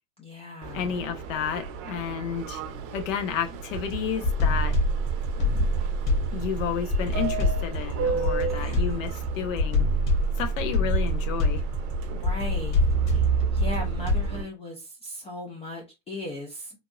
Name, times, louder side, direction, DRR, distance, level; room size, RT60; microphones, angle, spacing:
voice 1, 0.2-0.9 8.6-8.8 12.1-12.8 13.5-16.7, left 2 dB, 15° left, 0.4 m, -37 dB
Subway metro underground, 0.6-14.4, right 6 dB, 40° right, 0.8 m, -36 dB
voice 2, 0.7-2.6 2.9-4.8 5.5-5.6 6.3-9.9 10.4-11.6, left 8 dB, 70° left, 1.0 m, -31 dB
sound 1, 3.7-14.4, equal, 35° left, 1.5 m, -25 dB
3.8 x 2.6 x 2.3 m
supercardioid pair, 125°, 40 cm